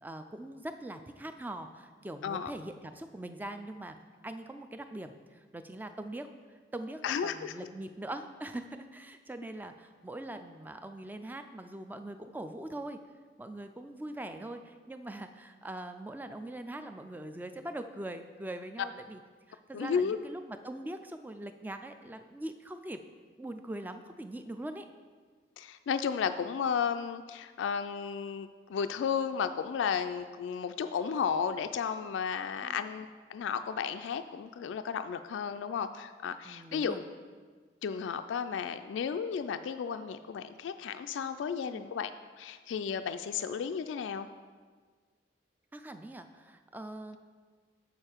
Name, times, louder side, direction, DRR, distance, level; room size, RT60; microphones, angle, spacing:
voice 1, 0.0-4.0 4.2-13.0 13.4-19.2 19.5-23.0 23.4-24.9 32.6-32.8 36.4-37.0 41.7-41.8 45.7-47.2, right 1 dB, 10° right, 8 dB, 0.3 m, -42 dB
voice 2, 7.0-7.6 19.7-20.2 25.6-37.0 37.8-42.1 42.4-44.3, left 6 dB, 85° left, 10 dB, 0.3 m, -33 dB
7.0 x 6.6 x 4.4 m, 1.5 s
head